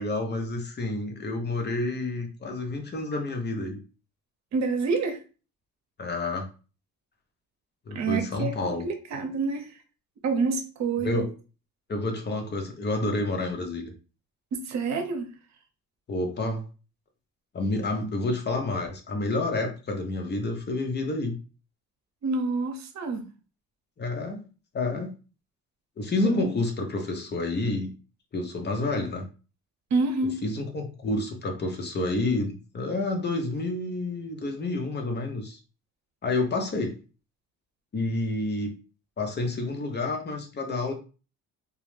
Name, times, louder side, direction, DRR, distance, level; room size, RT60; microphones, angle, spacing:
voice 1, 0.0-3.8 6.0-6.5 7.9-9.2 11.0-11.3 11.9-13.9 16.1-16.6 17.5-21.4 24.0-24.4 24.7-25.1 26.0-27.9 28.3-29.3 30.4-35.6 36.2-37.0 37.9-38.7 39.2-40.9, left 2 dB, 35° left, 0.7 m, -29 dB
voice 2, 4.5-5.2 7.9-9.7 10.2-11.3 14.5-15.3 22.2-23.3 26.2-26.5 29.9-30.4, right 4 dB, 65° right, 0.7 m, -27 dB
2.3 x 2.0 x 3.1 m
cardioid pair, 90°, 30 cm